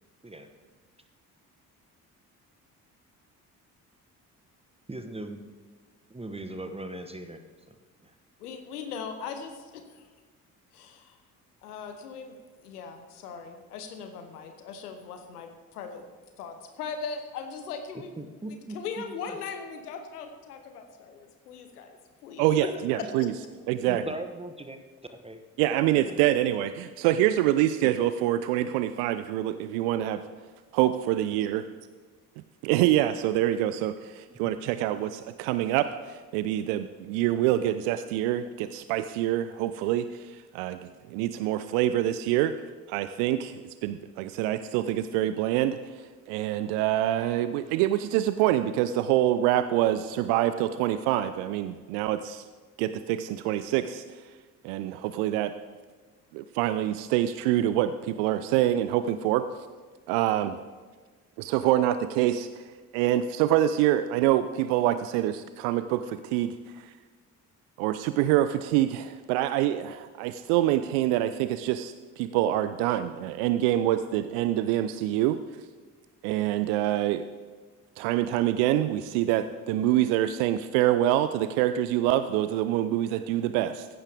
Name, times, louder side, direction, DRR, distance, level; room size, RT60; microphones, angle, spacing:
voice 1, 4.9-5.4 6.1-7.4 7.7-7.8 8.0-8.1 18.2-19.0 23.9-24.8 25.1-25.4 25.7-26.2 34.3-34.5, right 1 dB, 15° right, 7 dB, 1.2 m, -39 dB
voice 2, 8.4-10.1 10.7-11.2 11.6-12.4 12.6-16.0 16.4-18.1 18.5-23.3, left 6 dB, 80° left, 6 dB, 1.1 m, -39 dB
voice 3, 22.4-23.3 23.7-24.0 25.6-30.2 30.7-31.7 32.6-42.5 42.9-52.4 52.8-54.2 54.6-55.5 56.3-59.5 60.1-60.6 61.4-62.6 62.9-66.9 67.8-75.4 76.2-77.2 78.0-83.9, right 13 dB, 65° right, 12 dB, 0.6 m, -26 dB
15.0 x 11.0 x 3.5 m, 1.4 s
figure-of-eight pair, 45°, 46 cm